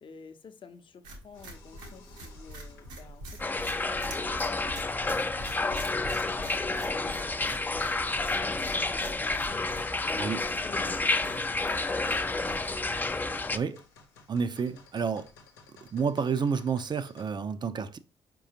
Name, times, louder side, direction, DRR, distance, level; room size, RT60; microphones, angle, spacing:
voice 1, 0.0-9.8 10.0-12.5, left 5 dB, 45° left, 0.7 m, -50 dB
sound 1, 1.0-13.0, right 1 dB, 80° right, 1.2 m, -45 dB
sound 2, 1.3-17.3, left 3 dB, 85° left, 0.8 m, -56 dB
sound 3, 3.4-13.6, left 3 dB, 15° left, 0.4 m, -30 dB
voice 2, 10.1-10.4 13.5-13.8 14.3-15.3 15.8-18.0, right 6 dB, 40° right, 0.5 m, -30 dB
4.8 x 3.7 x 2.8 m
hypercardioid pair, 45°, 12 cm